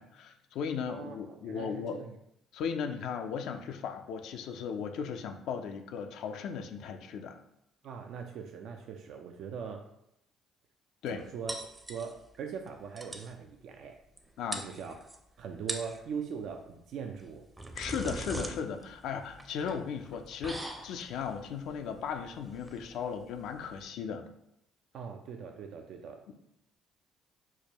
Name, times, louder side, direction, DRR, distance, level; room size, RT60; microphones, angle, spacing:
voice 1, 0.0-2.0 2.5-7.4 11.0-11.2 14.4-14.6 17.8-24.3 26.3-26.4, left 6 dB, 75° left, 6 dB, 0.3 m, -36 dB
voice 2, 0.9-2.1 7.8-9.9 11.1-11.6 11.9-14.0 14.6-14.9 15.4-17.5 24.9-26.2, right 6 dB, 70° right, 4 dB, 0.3 m, -41 dB
sound 1, 11.5-12.4 12.7-12.8 13.0-13.3 14.2-14.3 14.5-15.2 15.6-16.0 17.2-23.8, right 1 dB, 15° right, 0.5 m, -41 dB
4.6 x 2.2 x 2.9 m, 0.79 s
supercardioid pair, 80°, 0 cm